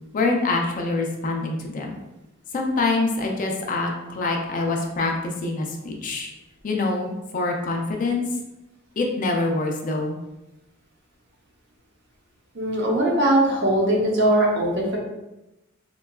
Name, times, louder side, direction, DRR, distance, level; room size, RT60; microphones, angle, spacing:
voice 1, 0.1-2.0 2.5-6.3 6.6-8.3 9.0-10.1, left 3 dB, 40° left, 1 dB, 0.4 m, -25 dB
voice 2, 12.5-15.0, right 1 dB, 55° right, -2 dB, 0.7 m, -20 dB
3.7 x 2.2 x 2.2 m, 0.97 s
head